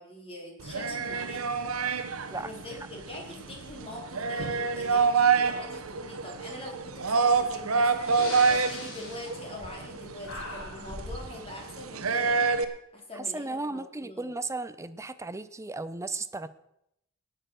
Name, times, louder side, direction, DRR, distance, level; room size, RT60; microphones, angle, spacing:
voice 1, 0.0-1.6 2.3-12.4 12.9-14.3, left 1 dB, 25° left, 0 dB, 3.8 m, -43 dB
sound 1, 0.6-12.6, right 5 dB, 75° right, 1.1 m, -27 dB
Breathing, 7.5-7.6 8.0-10.0 10.2-11.3, left 2 dB, 65° left, 4.7 m, -40 dB
voice 2, 13.2-16.5, right 3 dB, 15° right, 13 dB, 0.6 m, -35 dB
18.5 x 6.8 x 6.4 m, 0.80 s
head